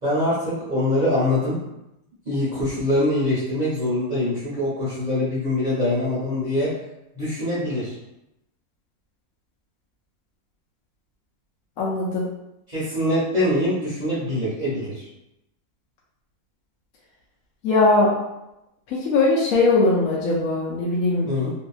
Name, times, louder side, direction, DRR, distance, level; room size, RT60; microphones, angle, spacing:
voice 1, 0.0-1.6 2.3-6.7 7.1-7.9 12.7-15.1 21.3-21.5, left 1 dB, 40° right, -10 dB, 0.7 m, -23 dB
voice 2, 11.8-12.3 17.6-18.1 18.9-21.3, left 3 dB, 70° left, -5 dB, 0.9 m, -20 dB
2.7 x 2.6 x 2.3 m, 0.89 s
omnidirectional pair, 1.7 m